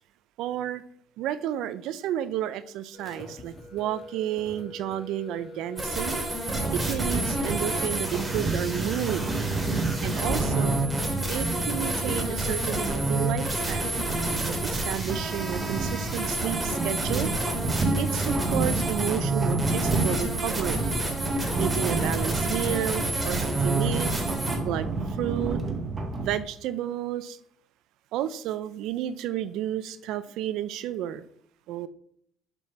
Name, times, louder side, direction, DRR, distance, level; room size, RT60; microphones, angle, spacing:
voice 1, 0.4-0.8 1.2-6.2 6.7-9.5 10.0-10.8 11.3-13.9 14.5-17.3 18.0-20.8 21.6-24.1 24.6-25.6 26.2-27.4 28.1-31.2 31.7-31.9, right 11 dB, 75° right, 0.5 m, -31 dB
sound 1, 2.9-14.3, left 2 dB, 30° left, 2.5 m, -44 dB
sound 2, 5.8-24.6, right 2 dB, 15° right, 2.5 m, -30 dB
sound 3, 6.5-26.4, right 2 dB, 30° right, 1.2 m, -30 dB
7.3 x 5.4 x 5.8 m
cardioid pair, 95°, 0 cm